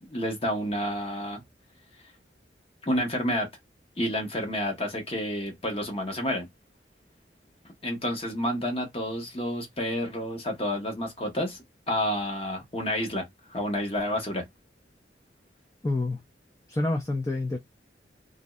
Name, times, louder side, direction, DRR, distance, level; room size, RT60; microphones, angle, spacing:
voice 1, 0.1-1.4 2.9-3.5 4.0-6.5 7.8-14.4, equal, 35° left, 1.1 m, -29 dB
voice 2, 15.8-16.2 16.7-17.6, left 2 dB, 15° left, 0.4 m, -27 dB
3.0 x 2.6 x 2.3 m
head